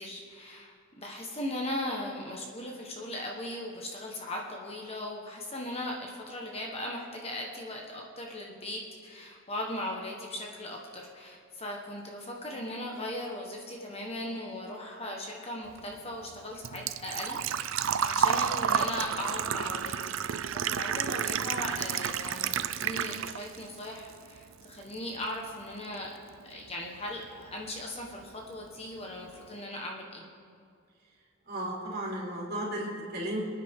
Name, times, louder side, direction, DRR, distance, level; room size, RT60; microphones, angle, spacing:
voice 1, 0.0-20.4 20.8-26.1 26.4-30.2, left 1 dB, 30° left, 0 dB, 1.3 m, -38 dB
Engine / Trickle dribble / Fill (with liquid), 15.7-23.6 24.0-24.9 25.2-25.3 27.2-27.3 27.5-27.9 28.2-28.3 28.6-28.7, right 8 dB, 65° right, 0.5 m, -30 dB
voice 2, 31.5-33.4, right 1 dB, 45° right, -6 dB, 4.3 m, -34 dB
26.5 x 9.6 x 3.7 m, 2.2 s
head